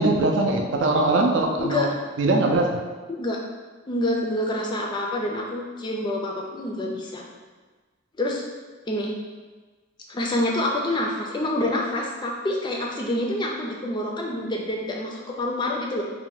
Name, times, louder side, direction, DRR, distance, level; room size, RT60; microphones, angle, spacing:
voice 1, 0.0-1.8 2.2-2.7, right 2 dB, 65° right, 1 dB, 0.4 m, -21 dB
voice 2, 3.9-7.2 8.2-8.4 8.9-9.1 10.1-16.0, left 1 dB, 25° left, -1 dB, 0.3 m, -27 dB
2.6 x 2.1 x 3.9 m, 1.4 s
head